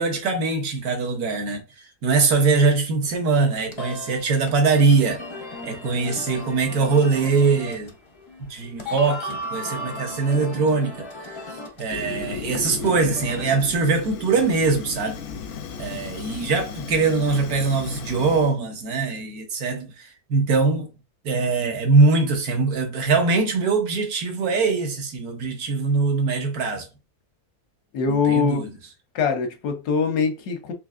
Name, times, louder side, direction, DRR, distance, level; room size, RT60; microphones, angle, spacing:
voice 1, 0.0-1.6 2.0-5.2 5.6-7.9 8.5-11.1 11.8-15.2 15.8-20.9 21.2-26.9 28.1-28.7, right 4 dB, 75° right, 1.4 m, -22 dB
sound 1, 3.0-13.4, left 1 dB, 45° left, 0.3 m, -36 dB
Fire, 11.9-18.5, left 5 dB, 70° left, 0.7 m, -35 dB
voice 2, 27.9-28.7 29.1-30.7, left 5 dB, 90° left, 1.3 m, -23 dB
4.5 x 3.0 x 2.4 m
omnidirectional pair, 1.6 m